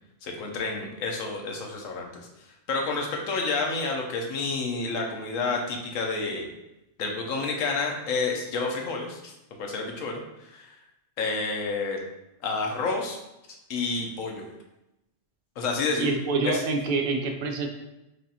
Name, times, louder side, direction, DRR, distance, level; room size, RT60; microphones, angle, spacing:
voice 1, 0.2-2.2 2.7-6.5 7.0-9.3 9.6-10.8 11.2-12.0 12.4-13.2 13.7-14.4 15.6-16.1 16.4-16.6, left 3 dB, 85° left, 1 dB, 1.1 m, -29 dB
voice 2, 16.0-17.7, right 3 dB, 65° right, 4 dB, 0.6 m, -26 dB
4.7 x 2.5 x 2.7 m, 0.92 s
omnidirectional pair, 1.4 m